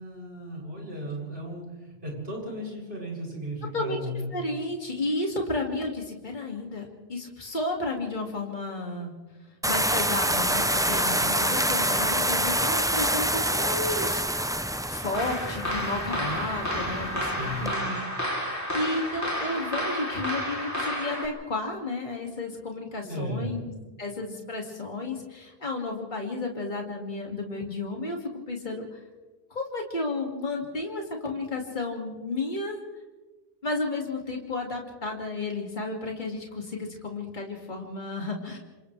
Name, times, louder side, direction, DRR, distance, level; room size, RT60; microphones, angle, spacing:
voice 1, 0.0-4.3 17.4-17.7 23.0-23.5, equal, 75° right, -2 dB, 8.2 m, -35 dB
voice 2, 3.7-9.1 9.7-29.0 29.5-32.8 33.6-38.6, left 2 dB, 50° left, 0 dB, 2.6 m, -32 dB
sound 1, 9.6-17.7, right 1 dB, 5° right, 0.4 m, -27 dB
sound 2, 15.1-21.3, equal, 15° left, 3.4 m, -31 dB
29.5 x 26.5 x 3.4 m, 1.2 s
omnidirectional pair, 1.0 m